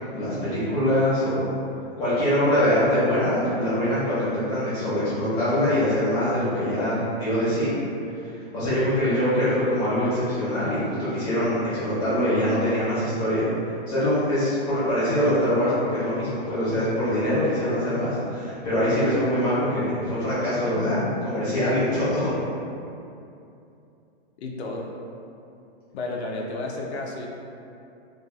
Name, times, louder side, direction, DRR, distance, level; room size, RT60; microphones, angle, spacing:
voice 1, 0.1-1.4 2.0-7.7 8.5-13.4 13.9-22.3, equal, 30° left, -11 dB, 0.9 m, -23 dB
voice 2, 24.4-24.9 25.9-27.3, left 2 dB, 90° left, 0 dB, 0.5 m, -32 dB
2.7 x 2.3 x 2.2 m, 2.6 s
hypercardioid pair, 150°, 32 cm